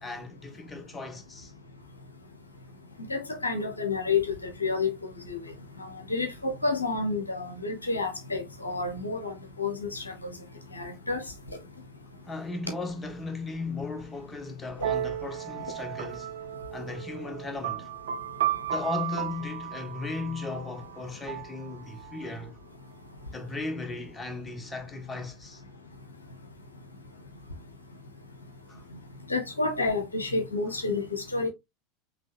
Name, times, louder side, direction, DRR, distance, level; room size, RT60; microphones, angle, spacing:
voice 1, 0.0-1.5 12.2-16.4 16.7-17.9 18.7-22.6 23.3-25.6 28.7-28.8, left 3 dB, 20° left, 1.3 m, -36 dB
voice 2, 3.1-4.9 5.3-5.4 5.8-10.1 10.7-11.2 29.3-31.5, left 3 dB, 90° left, 0.8 m, -29 dB
sound 1, 14.8-22.4, right 11 dB, 75° right, 0.5 m, -34 dB
5.3 x 3.1 x 2.9 m
figure-of-eight pair, 80°, 0 cm